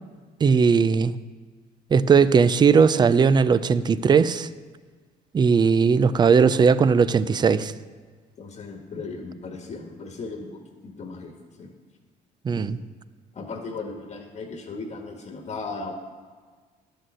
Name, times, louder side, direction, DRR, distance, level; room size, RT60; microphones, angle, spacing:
voice 1, 0.4-1.2 1.9-4.5 5.3-7.7 12.4-12.8, right 5 dB, 25° right, 16 dB, 0.4 m, -18 dB
voice 2, 8.4-11.7 12.5-12.8 13.3-15.9, left 3 dB, 40° left, 3 dB, 1.3 m, -37 dB
11.0 x 6.4 x 7.7 m, 1.5 s
cardioid pair, 110°, 17 cm